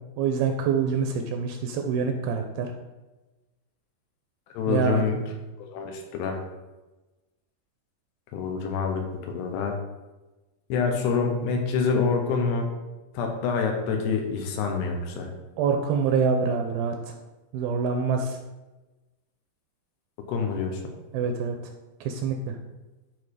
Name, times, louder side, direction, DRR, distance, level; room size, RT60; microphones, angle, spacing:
voice 1, 0.2-2.7 4.7-5.1 15.6-16.9 17.5-18.4 21.1-21.6 22.1-22.6, right 6 dB, 80° right, 5 dB, 2.4 m, -25 dB
voice 2, 4.5-5.2 5.6-6.4 8.3-9.8 10.7-12.7 13.1-15.3 20.3-20.8, left 5 dB, 80° left, 3 dB, 3.2 m, -26 dB
9.9 x 4.2 x 4.8 m, 1.1 s
omnidirectional pair, 4.8 m